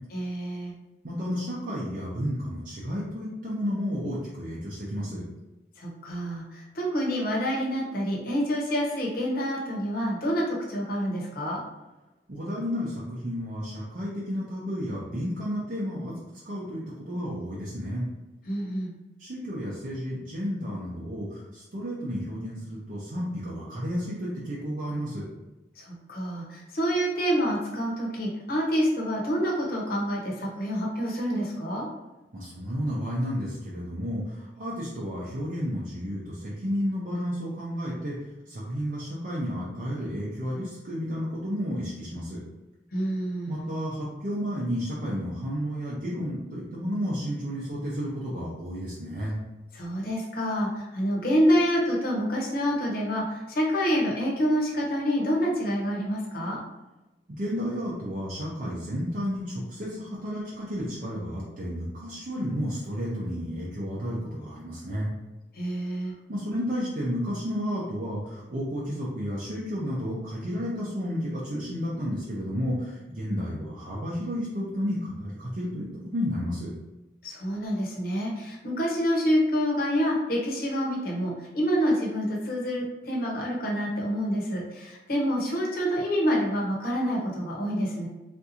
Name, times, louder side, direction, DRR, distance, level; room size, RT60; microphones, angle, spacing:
voice 1, 0.1-0.7 5.8-11.6 18.5-18.9 25.8-31.9 42.9-43.7 49.7-56.6 65.5-66.1 77.2-88.1, equal, 55° left, -2 dB, 0.8 m, -27 dB
voice 2, 1.0-5.2 12.3-16.1 16.4-16.8 17.1-18.1 19.2-25.2 32.3-38.1 38.5-42.4 43.5-49.4 57.3-65.1 66.3-76.7, equal, 50° right, -6 dB, 0.6 m, -32 dB
3.6 x 2.6 x 2.8 m, 1.1 s
head